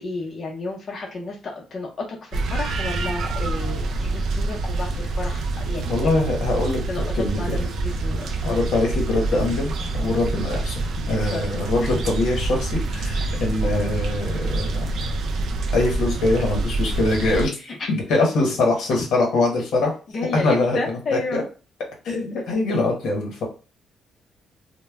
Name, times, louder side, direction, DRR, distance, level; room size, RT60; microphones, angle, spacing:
voice 1, 0.0-6.3 6.9-8.6 11.1-12.0 13.1-13.4 17.5-17.9 20.1-21.5 22.3-22.4, left 3 dB, 40° left, -1 dB, 0.6 m, -32 dB
sound 1, 2.3-17.5, right 2 dB, 65° right, 0.3 m, -26 dB
voice 2, 5.8-6.8 7.2-7.6 8.4-10.8 11.1-14.9 15.7-17.5 17.9-19.9 20.4-21.4 22.0-23.4, left 2 dB, 80° left, 0 dB, 1.0 m, -23 dB
2.1 x 2.0 x 3.4 m, 0.33 s
cardioid pair, 90°, 0 cm